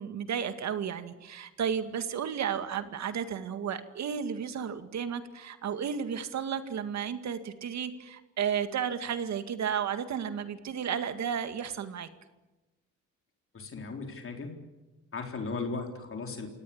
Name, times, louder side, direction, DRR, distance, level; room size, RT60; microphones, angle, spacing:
voice 1, 0.0-12.1, right 8 dB, 65° right, 10 dB, 2.0 m, -33 dB
voice 2, 13.5-14.5 15.1-16.5, left 4 dB, 45° left, 3 dB, 4.1 m, -36 dB
28.0 x 18.0 x 8.8 m, 1.1 s
cardioid pair, 90°, 30 cm